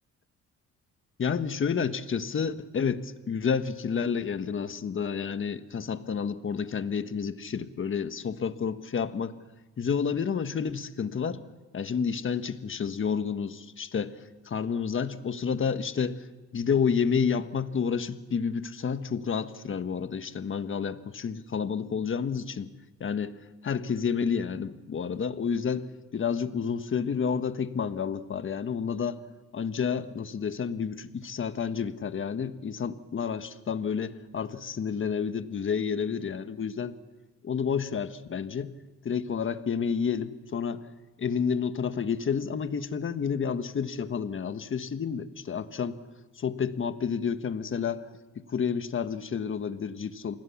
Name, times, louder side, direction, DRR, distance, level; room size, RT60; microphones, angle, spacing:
voice 1, 1.2-9.3 9.8-11.4 11.7-14.2 14.4-16.3 16.5-22.7 23.0-23.4 23.6-25.8 26.1-29.2 29.5-37.0 37.4-38.7 39.0-40.8 41.2-46.0 46.3-48.0 48.3-50.3, left 6 dB, 40° left, 10 dB, 1.5 m, -30 dB
28.0 x 20.0 x 7.3 m, 1.1 s
cardioid pair, 90°, 30 cm